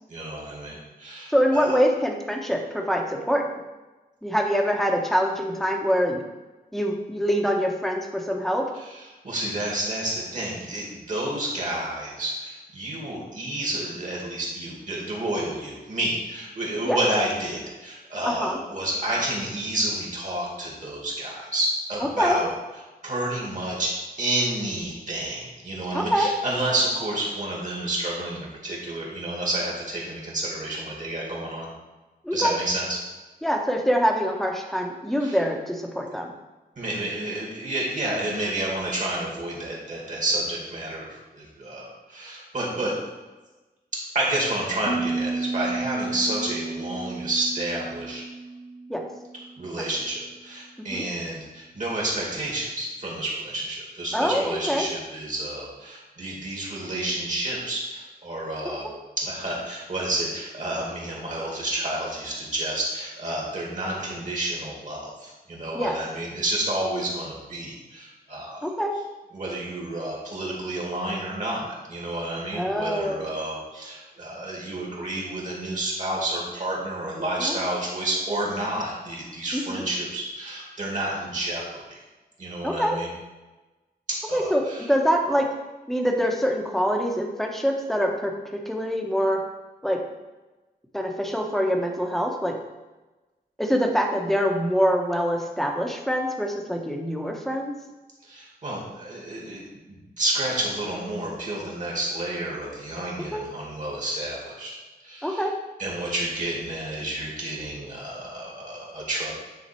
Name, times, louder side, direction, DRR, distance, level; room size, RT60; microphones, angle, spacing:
voice 1, 0.1-1.8 8.8-22.5 23.0-23.9 24.2-31.7 32.3-33.0 35.2-35.4 36.8-42.9 44.1-48.2 49.6-58.9 59.2-68.7 69.3-81.8 82.4-83.1 84.3-84.9 98.2-104.7 105.0-105.4 105.8-109.3, right 1 dB, 50° right, -3 dB, 2.4 m, -30 dB
voice 2, 1.3-3.4 4.2-6.2 6.7-8.6 16.9-17.0 18.3-18.6 22.2-22.4 25.9-26.3 32.2-32.5 33.4-36.3 48.9-49.0 50.9-51.0 54.1-54.9 65.7-65.9 68.6-68.9 72.5-73.2 77.4-77.6 79.5-79.8 82.6-83.0 84.3-84.6 84.9-85.5 85.9-88.3 88.6-89.4 89.8-90.0 90.9-92.5 93.6-97.7 103.3-103.5 105.2-105.5, equal, ahead, 1 dB, 1.0 m, -24 dB
Piano, 44.9-50.5, right 3 dB, 25° right, 0.7 m, -33 dB
9.2 x 4.0 x 4.4 m, 1.2 s
wide cardioid pair, 105°, 17 cm